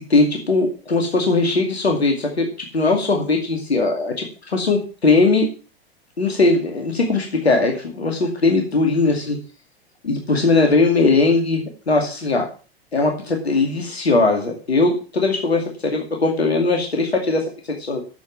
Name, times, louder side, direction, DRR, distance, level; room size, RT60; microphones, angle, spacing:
voice 1, 0.1-4.3 4.5-5.5 6.2-9.4 10.0-12.5 12.9-17.4 17.8-18.0, left 3 dB, 85° left, 2 dB, 2.4 m, -19 dB
10.0 x 7.1 x 7.1 m, 0.36 s
figure-of-eight pair, 90°, 31 cm